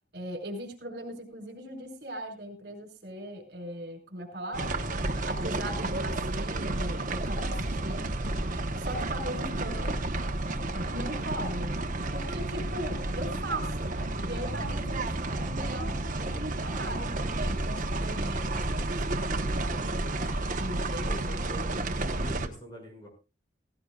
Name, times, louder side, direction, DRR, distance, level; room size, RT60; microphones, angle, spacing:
voice 1, 0.1-4.8 5.3-8.1 8.8-10.0 10.9-11.7 12.1-19.9 20.5-21.7, right 1 dB, 60° right, 3 dB, 4.5 m, -39 dB
sound 1, 4.5-22.5, right 2 dB, 45° right, 1.2 m, -31 dB
voice 2, 21.0-23.1, equal, 25° left, 1 dB, 6.5 m, -45 dB
17.5 x 17.0 x 2.4 m, 0.30 s
head